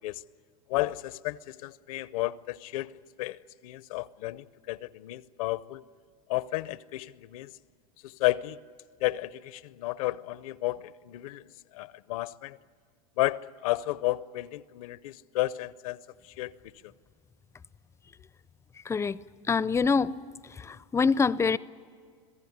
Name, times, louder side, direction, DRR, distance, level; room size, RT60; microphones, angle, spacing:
voice 1, 0.7-2.9 3.2-5.8 6.3-7.5 8.0-8.6 9.0-11.4 11.7-12.6 13.2-16.0 16.4-16.5, left 18 dB, 75° left, 0.7 m, -32 dB
voice 2, 18.9-19.2 19.5-20.1 20.6-21.6, left 5 dB, 15° left, 0.5 m, -25 dB
26.5 x 16.0 x 9.5 m
supercardioid pair, 110°, 18 cm